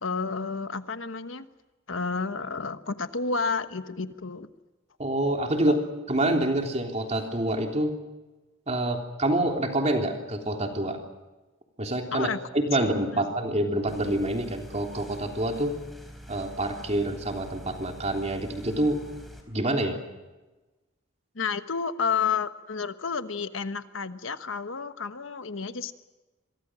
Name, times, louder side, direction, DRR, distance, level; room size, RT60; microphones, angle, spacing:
voice 1, 0.0-1.5 1.9-4.5 5.7-5.8 12.1-12.4 13.1-13.3 21.3-25.9, left 5 dB, 80° left, 11 dB, 1.2 m, -30 dB
voice 2, 5.0-5.8 6.1-7.9 8.7-11.0 11.8-15.8 16.3-19.0 19.5-20.0, right 1 dB, 35° right, 3 dB, 3.4 m, -27 dB
sound 1, 13.9-19.4, equal, ahead, 4.2 m, -45 dB
27.0 x 23.5 x 6.3 m, 1.2 s
head